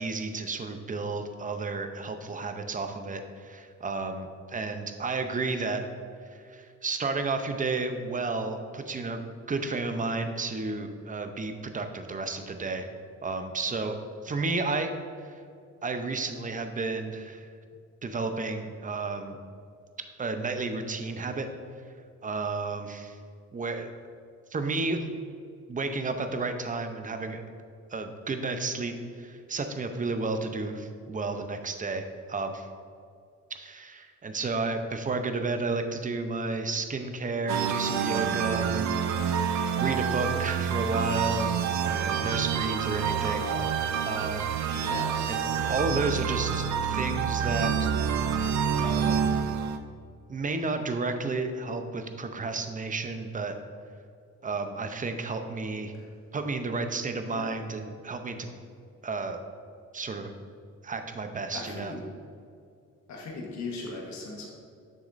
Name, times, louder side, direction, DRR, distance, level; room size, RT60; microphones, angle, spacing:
voice 1, 0.0-5.8 6.5-9.2 9.5-12.9 13.2-14.0 14.2-14.9 15.2-15.3 15.8-17.5 18.0-19.4 20.2-21.5 22.2-23.2 23.5-23.9 24.5-25.1 25.7-27.4 27.9-32.7 33.5-43.4 44.1-44.5 44.8-44.9 45.2-45.4 45.7-47.9 48.8-49.2 50.3-53.5 54.4-55.9 56.3-58.5 59.0-59.4 59.9-60.3 60.8-61.9, right 3 dB, 25° right, 7 dB, 0.6 m, -32 dB
sound 1, 37.5-49.8, right 7 dB, 65° right, 0.5 m, -28 dB
voice 2, 43.3-43.8 44.7-45.3 57.3-57.5 61.5-62.1 63.1-64.5, left 3 dB, 65° left, -1 dB, 1.3 m, -38 dB
6.9 x 6.4 x 2.6 m, 2.3 s
cardioid pair, 90°, 30 cm